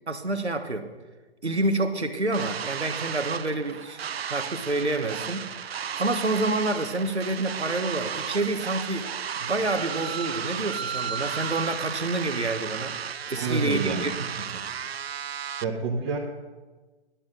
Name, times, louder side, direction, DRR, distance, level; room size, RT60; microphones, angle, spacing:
voice 1, 0.1-0.9 1.4-9.1 9.4-13.0 13.3-14.6, right 2 dB, 90° right, 7 dB, 1.2 m, -28 dB
sound 1, 2.3-15.6, right 8 dB, 70° right, 0.5 m, -34 dB
voice 2, 13.4-14.1 15.6-16.2, right 4 dB, 25° right, -2 dB, 1.1 m, -27 dB
11.5 x 6.9 x 6.2 m, 1.3 s
figure-of-eight pair, 130°, 32 cm